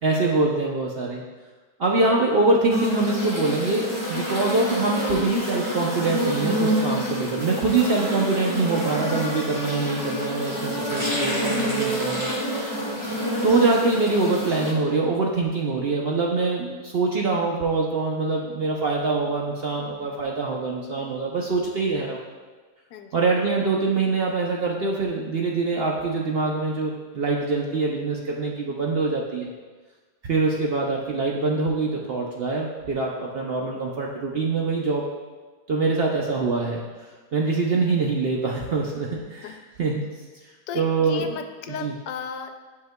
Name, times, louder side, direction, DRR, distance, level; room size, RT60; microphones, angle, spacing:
voice 1, 0.0-1.2 1.8-12.8 13.4-22.2 23.1-29.5 30.2-35.1 35.7-40.0 40.7-41.4 41.7-41.9, right 3 dB, 70° right, -1 dB, 0.5 m, -24 dB
sound 1, 2.7-14.7, equal, 20° right, 1.5 m, -27 dB
voice 2, 40.7-42.5, left 7 dB, 85° left, 6 dB, 1.2 m, -35 dB
10.5 x 5.7 x 2.2 m, 1.3 s
omnidirectional pair, 1.8 m